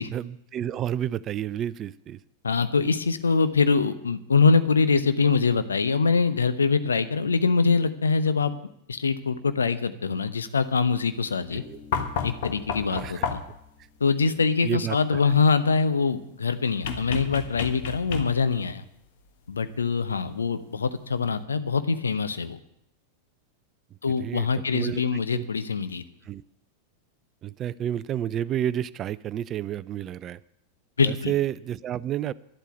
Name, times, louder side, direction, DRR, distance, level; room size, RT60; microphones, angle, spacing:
voice 1, 0.1-2.2 11.5-11.8 12.9-13.3 14.6-15.2 24.2-24.5 24.7-25.4 26.3-26.4 27.4-30.4 31.0-32.3, right 11 dB, 30° right, 19 dB, 0.4 m, -30 dB
voice 2, 2.4-8.5 8.9-11.6 12.2-13.4 14.0-18.8 19.5-22.6 24.0-26.0 31.0-31.3, left 4 dB, 75° left, 11 dB, 0.9 m, -24 dB
Bass guitar, 11.6-15.0, left 4 dB, 20° left, 2.4 m, -52 dB
sound 1, 11.9-13.7 16.8-18.6 20.1-20.2, left 6 dB, 55° left, 1.4 m, -31 dB
11.5 x 8.2 x 9.2 m, 0.78 s
figure-of-eight pair, 90°, 0 cm